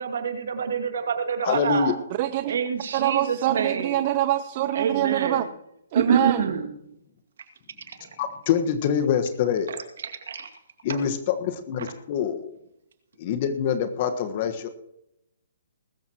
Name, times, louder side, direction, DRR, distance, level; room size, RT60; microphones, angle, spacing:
voice 1, 0.0-1.9 2.5-4.0 4.8-5.5 5.9-6.7 7.9-8.0 10.0-10.5 10.9-11.0, right 6 dB, 65° right, 6 dB, 2.2 m, -26 dB
voice 2, 1.4-1.9 8.2-9.7 10.8-12.6 13.2-14.7, left 7 dB, 40° left, 8 dB, 1.4 m, -25 dB
voice 3, 2.2-2.6 2.9-5.5 5.9-6.5, right 14 dB, 40° right, 10 dB, 0.8 m, -25 dB
20.5 x 13.5 x 3.0 m, 0.81 s
hypercardioid pair, 140°, 0 cm